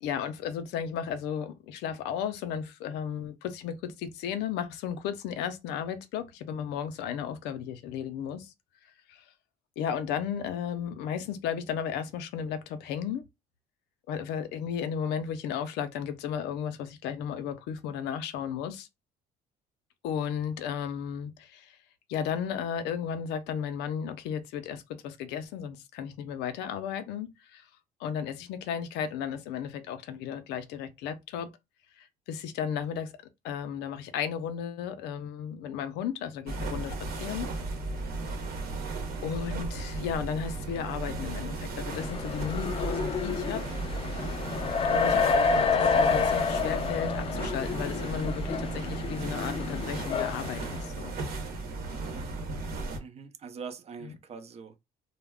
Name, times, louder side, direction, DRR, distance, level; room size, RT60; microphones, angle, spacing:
voice 1, 0.0-8.5 9.1-9.2 9.8-13.2 14.1-18.9 20.0-21.8 22.1-27.7 28.0-31.5 32.0-33.1 33.4-37.5 39.2-43.6 44.9-51.2 54.0-54.1, left 8 dB, 85° left, 0.5 m, -34 dB
sound 1, 36.5-53.0, right 3 dB, 65° right, 0.9 m, -35 dB
sound 2, 41.9-50.9, left 5 dB, 35° left, 0.4 m, -29 dB
voice 2, 53.0-54.8, right 6 dB, 40° right, 0.5 m, -43 dB
2.3 x 2.0 x 3.4 m
cardioid pair, 110°, 17 cm